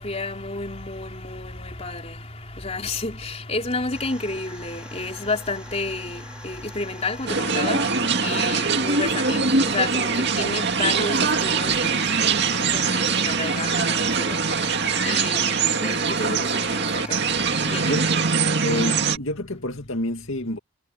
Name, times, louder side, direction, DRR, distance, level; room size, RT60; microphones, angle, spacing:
voice 1, 0.0-2.3 2.5-14.7 15.0-18.0, left 3 dB, 30° left, 4.0 m, -31 dB
sound 1, 3.9-19.1, right 1 dB, 5° right, 4.0 m, -44 dB
sound 2, 7.3-19.2, right 5 dB, 50° right, 2.2 m, -23 dB
voice 2, 17.8-18.2 18.6-20.6, left 1 dB, 65° left, 2.4 m, -29 dB
head